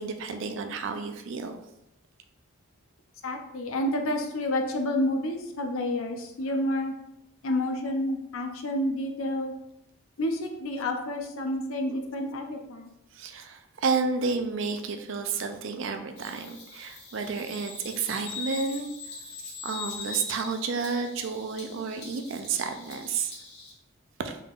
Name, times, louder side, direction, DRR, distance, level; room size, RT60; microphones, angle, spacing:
voice 1, 0.0-1.6 13.1-18.9 19.4-23.3 24.2-24.4, right 5 dB, 60° right, 6 dB, 0.4 m, -31 dB
voice 2, 3.2-6.9 7.4-9.5 10.2-12.9, left 1 dB, 70° left, 4 dB, 0.5 m, -29 dB
Bird vocalization bird call bird song, 16.2-23.7, left 5 dB, 45° left, 1.5 m, -42 dB
3.6 x 3.5 x 2.4 m, 0.84 s
head